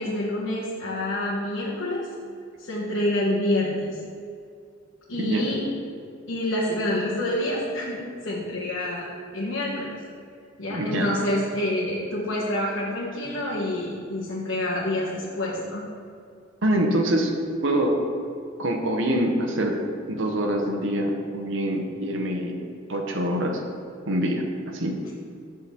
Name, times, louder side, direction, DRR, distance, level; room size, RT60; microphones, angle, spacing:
voice 1, 0.0-2.1 2.6-3.9 5.1-5.6 6.3-9.1 9.3-10.0 10.6-15.8, left 1 dB, 75° left, -8 dB, 1.4 m, -27 dB
voice 2, 5.1-5.5 10.7-11.1 16.6-17.4 17.6-17.9 18.6-19.8 20.1-22.5 22.9-23.6 24.1-24.4 24.7-25.0, right 1 dB, 70° right, 2 dB, 0.9 m, -25 dB
8.3 x 3.9 x 6.7 m, 2.4 s
head